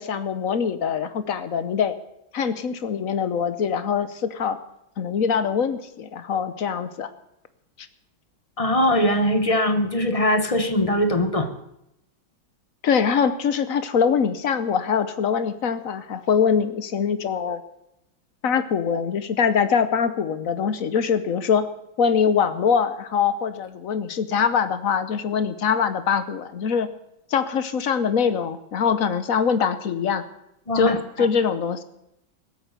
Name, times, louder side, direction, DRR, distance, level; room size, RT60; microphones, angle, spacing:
voice 1, 0.0-1.9 2.3-4.6 5.0-7.1 12.8-17.6 18.4-21.7 22.0-26.9 27.3-30.2 30.7-31.8, left 6 dB, 55° left, 12 dB, 1.1 m, -23 dB
voice 2, 8.6-11.5 30.7-31.3, left 1 dB, 30° left, 8 dB, 0.7 m, -21 dB
20.0 x 8.6 x 6.7 m, 0.82 s
omnidirectional pair, 2.2 m